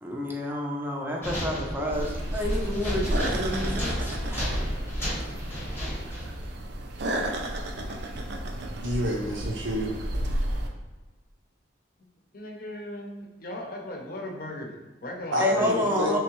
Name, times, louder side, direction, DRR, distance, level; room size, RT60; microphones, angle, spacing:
voice 1, 0.0-4.6 15.4-16.2, left 1 dB, 10° right, -1 dB, 0.5 m, -29 dB
Cage rattling, 1.2-6.4, equal, 10° left, 0.9 m, -33 dB
sound 1, 1.9-10.7, right 1 dB, 60° right, 0.5 m, -32 dB
voice 2, 8.8-10.0 15.3-16.2, equal, 80° right, -1 dB, 0.9 m, -29 dB
voice 3, 12.3-16.2, left 1 dB, 50° left, 1 dB, 0.6 m, -38 dB
3.5 x 3.1 x 3.0 m, 1.2 s
head